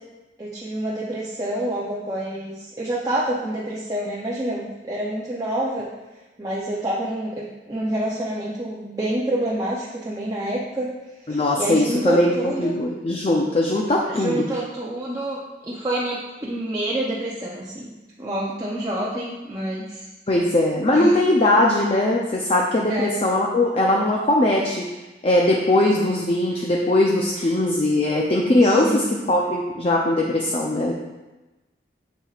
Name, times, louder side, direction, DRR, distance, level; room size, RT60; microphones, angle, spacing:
voice 1, 0.4-5.9 6.4-10.9 11.3-12.7 14.1-17.9 18.2-20.1 20.9-21.1 22.9-23.1 27.3-27.5 28.6-29.1, right 1 dB, 20° right, -6 dB, 0.7 m, -27 dB
voice 2, 11.3-14.4 20.3-24.9 25.2-30.9, left 1 dB, 35° left, -1 dB, 0.6 m, -20 dB
7.2 x 7.2 x 2.4 m, 1.1 s
head